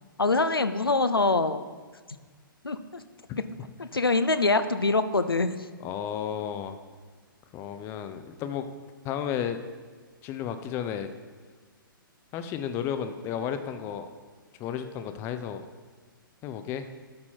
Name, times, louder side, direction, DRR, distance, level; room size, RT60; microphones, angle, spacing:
voice 1, 0.2-1.6 2.6-3.0 3.3-3.4 3.8-5.6, left 3 dB, 85° left, 11 dB, 0.5 m, -24 dB
voice 2, 5.8-6.8 7.5-8.7 9.0-9.6 10.2-11.1 12.3-14.1 14.6-15.6 16.4-16.9, left 9 dB, 20° left, 9 dB, 0.5 m, -33 dB
12.5 x 4.1 x 4.4 m, 1.5 s
figure-of-eight pair, 120°, 12 cm